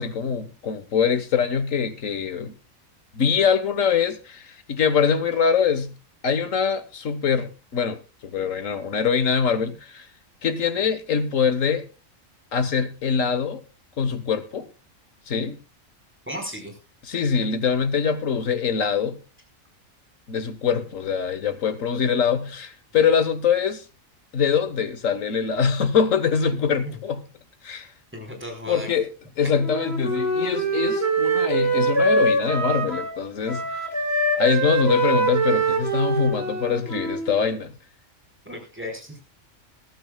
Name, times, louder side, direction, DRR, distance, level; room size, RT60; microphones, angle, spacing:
voice 1, 0.0-2.5 3.1-5.9 6.2-10.1 10.4-11.9 12.5-13.6 14.0-14.7 15.3-15.6 17.1-19.2 20.3-23.8 24.3-27.2 27.6-27.9 28.7-29.1 29.4-33.6 34.4-37.7, left 6 dB, 75° left, 1.8 m, -23 dB
voice 2, 16.3-16.8 26.8-27.0 28.1-28.9 38.4-39.2, left 1 dB, 10° right, 4.8 m, -35 dB
Wind instrument woodwind instrument, 29.6-33.2 33.5-37.4, right 2 dB, 50° right, 2.7 m, -24 dB
21.5 x 12.5 x 2.4 m
omnidirectional pair, 1.4 m